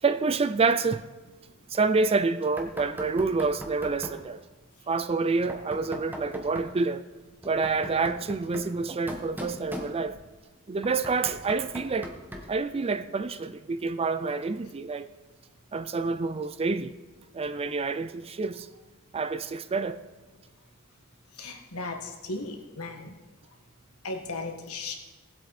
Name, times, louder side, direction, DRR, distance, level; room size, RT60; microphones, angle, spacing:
voice 1, 0.0-1.1 1.7-4.4 4.9-7.0 7.4-10.2 10.7-12.1 12.5-15.1 15.7-16.9 17.3-18.7 19.1-20.0, right 4 dB, 25° right, 0.4 m, -28 dB
Knock, 2.6-4.3 5.5-6.8 7.4-10.3 10.8-12.6, equal, 10° right, 1.3 m, -40 dB
voice 2, 21.4-23.1 24.0-24.9, left 3 dB, 75° left, 1.7 m, -36 dB
18.5 x 7.9 x 4.2 m
head